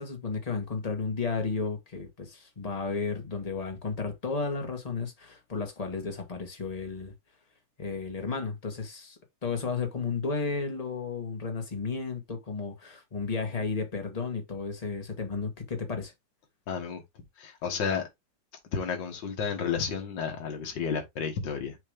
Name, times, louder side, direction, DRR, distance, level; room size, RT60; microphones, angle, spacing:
voice 1, 0.0-7.1 7.8-16.1, left 4 dB, 20° left, 1.4 m, -33 dB
voice 2, 16.7-17.0 17.4-18.1 18.7-21.8, left 6 dB, 70° left, 2.1 m, -31 dB
6.3 x 3.0 x 5.1 m
omnidirectional pair, 2.1 m